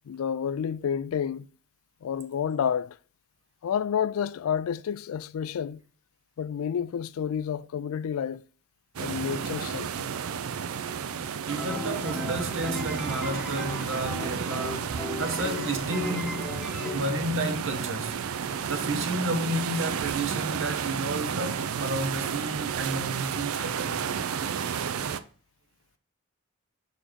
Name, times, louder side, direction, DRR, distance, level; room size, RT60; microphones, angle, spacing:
voice 1, 0.1-1.5 2.0-3.0 3.6-5.8 6.4-8.4 9.0-10.1, left 8 dB, 75° left, 0.3 m, -30 dB
sound 1, 9.0-25.2, right 7 dB, 85° right, 0.5 m, -32 dB
sound 2, 11.5-17.0, left 1 dB, 5° right, 1.0 m, -36 dB
voice 2, 11.5-16.5 16.9-18.2 18.5-24.0, right 1 dB, 60° right, 1.0 m, -31 dB
5.0 x 4.2 x 4.4 m
head